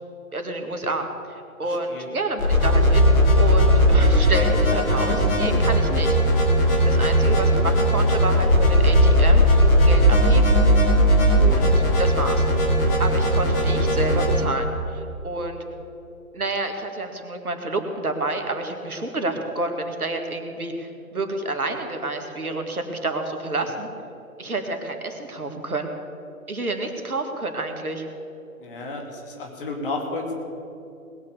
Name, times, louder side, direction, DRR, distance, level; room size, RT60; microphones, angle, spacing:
voice 1, 0.3-3.0 3.4-6.2 6.8-10.6 11.4-12.4 13.0-15.6 16.3-23.9 24.4-25.9 26.5-28.0, right 2 dB, 80° right, 5 dB, 2.1 m, -29 dB
voice 2, 1.6-2.1 4.7-5.2 6.7-7.0 7.3-7.5 11.4-11.7 28.6-30.3, left 3 dB, 40° left, 1 dB, 2.6 m, -33 dB
sound 1, 2.4-14.4, equal, 15° left, 2.8 m, -18 dB
20.0 x 7.0 x 6.9 m, 2.8 s
figure-of-eight pair, 140°, 43 cm